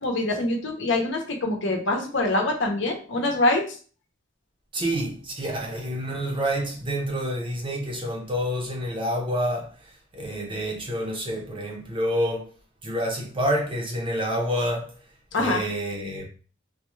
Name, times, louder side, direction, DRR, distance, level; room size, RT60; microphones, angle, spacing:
voice 1, 0.0-3.6 15.3-15.6, left 2 dB, 60° left, 0.7 m, -24 dB
voice 2, 4.7-12.5 12.8-14.9 15.3-16.3, equal, 25° right, 0.7 m, -28 dB
3.6 x 2.3 x 3.1 m
head